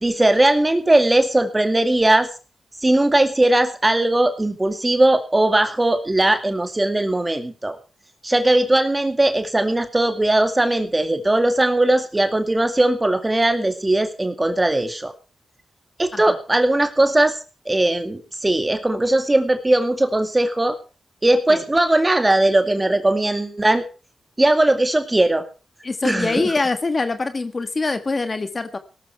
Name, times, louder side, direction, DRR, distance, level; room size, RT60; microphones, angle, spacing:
voice 1, 0.0-2.3 2.8-7.8 8.2-15.1 16.0-17.4 17.7-20.8 21.2-23.8 24.4-25.5 26.0-26.5, right 1 dB, 20° right, 8 dB, 2.2 m, -19 dB
voice 2, 25.8-28.8, left 3 dB, 35° left, 9 dB, 1.6 m, -24 dB
18.0 x 13.0 x 4.5 m, 0.35 s
cardioid pair, 85°, 0 cm